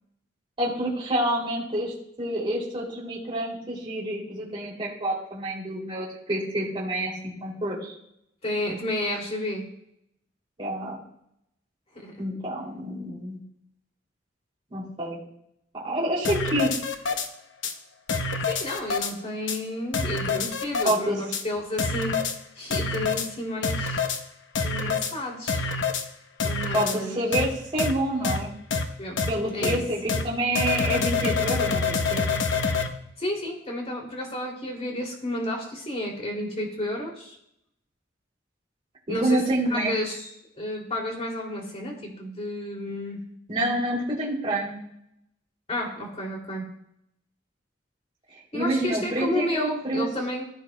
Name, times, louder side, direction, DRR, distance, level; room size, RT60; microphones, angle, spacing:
voice 1, 0.6-7.9 10.6-11.0 12.2-13.4 14.7-15.2 15.7-16.7 20.8-21.2 26.7-28.5 29.3-32.2 39.1-39.9 43.5-44.8 48.5-50.1, right 1 dB, 30° right, -6 dB, 2.9 m, -28 dB
voice 2, 8.4-9.6 11.9-12.2 18.5-22.2 22.6-24.0 24.6-25.6 26.4-27.2 29.0-29.2 29.5-29.8 33.2-37.4 39.1-39.4 39.7-40.3 40.6-43.2 45.7-46.7 48.5-50.4, left 1 dB, 35° left, -1 dB, 2.8 m, -31 dB
sound 1, 16.2-17.3 17.6-17.7 18.1-19.1 19.5-19.6 19.9-21.0 21.3-21.4 21.8-22.3 22.7-23.3 23.6-24.2 24.5-25.1 25.5-26.0 26.4-27.0 27.3-27.5 27.8-27.9 28.2-28.4 28.7-28.8 29.2-29.3 29.6-29.8 30.1-30.2 30.5-32.9, left 4 dB, 75° left, 0.9 m, -26 dB
15.5 x 8.9 x 2.3 m, 0.76 s
head